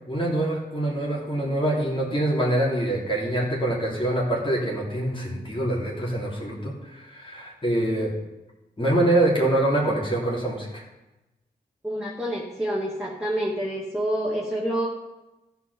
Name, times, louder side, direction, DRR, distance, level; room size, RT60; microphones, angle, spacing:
voice 1, 0.1-8.1 8.8-10.8, right 1 dB, 30° left, -4 dB, 3.2 m, -25 dB
voice 2, 11.8-14.9, right 1 dB, 5° right, -5 dB, 2.2 m, -27 dB
13.5 x 4.7 x 6.9 m, 1.0 s
cardioid pair, 50°, 18 cm